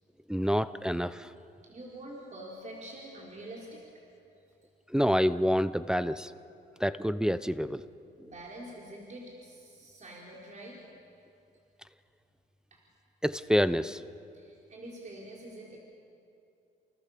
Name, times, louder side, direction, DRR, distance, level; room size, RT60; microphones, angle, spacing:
voice 1, 0.3-1.3 4.9-6.3 6.8-7.8 8.2-8.3 13.2-14.0, equal, 5° right, 12 dB, 0.8 m, -27 dB
voice 2, 1.6-3.8 4.4-4.5 8.2-10.8 12.7-12.8 14.3-15.8, right 1 dB, 40° right, -3 dB, 5.0 m, -46 dB
29.0 x 28.5 x 6.9 m, 2.7 s
cardioid pair, 90°, 20 cm